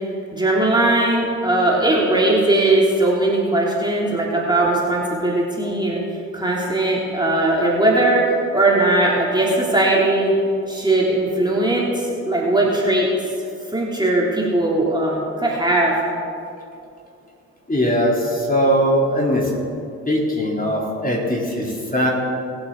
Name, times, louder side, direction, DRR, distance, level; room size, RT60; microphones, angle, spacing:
voice 1, 0.3-6.0 6.3-10.3 10.7-13.1 13.7-16.0, right 2 dB, 10° right, -4 dB, 3.1 m, -19 dB
voice 2, 17.7-19.5 20.1-22.1, equal, 20° left, -3 dB, 3.6 m, -20 dB
22.0 x 8.1 x 3.9 m, 2.6 s
hypercardioid pair, 40°, 39 cm